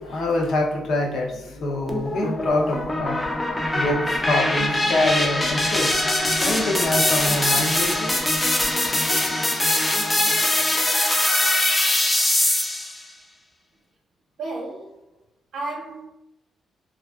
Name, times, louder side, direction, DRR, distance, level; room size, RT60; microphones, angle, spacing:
voice 1, 0.0-8.1, left 2 dB, 65° left, 0 dB, 0.6 m, -25 dB
sound 1, 1.9-13.0, left 1 dB, 15° left, 0.3 m, -22 dB
voice 2, 14.4-15.1 15.5-16.0, right 2 dB, 60° right, -4 dB, 0.6 m, -33 dB
2.4 x 2.4 x 2.3 m, 0.84 s
cardioid pair, 115°, 0 cm